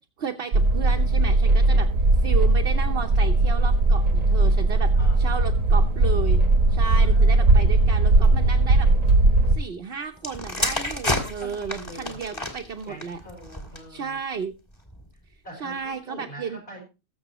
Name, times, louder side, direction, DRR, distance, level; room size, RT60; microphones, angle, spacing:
voice 1, 0.2-1.9 2.2-4.9 5.2-6.4 6.7-8.9 9.5-13.2 13.9-14.5 15.6-16.6, right 6 dB, 50° right, 2 dB, 1.0 m, -33 dB
sound 1, 0.5-9.6, right 2 dB, 90° right, 1.7 m, -19 dB
voice 2, 4.9-5.5 6.8-7.6 11.0-14.2 15.4-16.8, right 1 dB, 45° left, 0 dB, 5.0 m, -44 dB
sound 2, 10.2-14.0 14.8-15.1, left 1 dB, 20° left, 2.0 m, -30 dB
20.5 x 7.0 x 3.0 m, 0.29 s
omnidirectional pair, 1.4 m